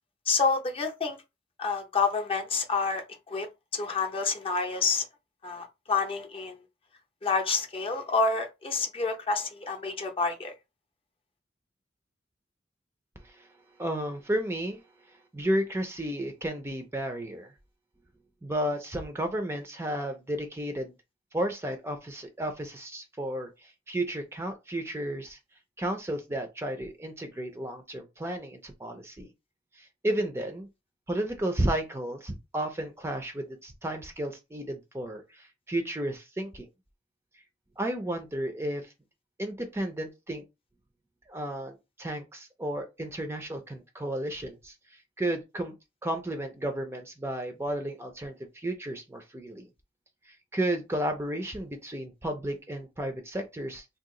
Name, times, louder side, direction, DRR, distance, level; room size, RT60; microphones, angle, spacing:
voice 1, 0.3-1.2 1.6-3.5 3.7-5.0 5.4-6.6 7.2-10.5, left 4 dB, 30° left, 0.6 m, -28 dB
voice 2, 13.8-14.8 15.1-17.5 18.4-20.9 21.3-25.4 25.8-29.3 29.8-30.7 31.1-36.7 37.8-38.9 39.4-40.4 41.3-45.7 46.0-49.7 50.3-53.8, right 1 dB, 15° right, 0.5 m, -33 dB
2.8 x 2.3 x 3.7 m
head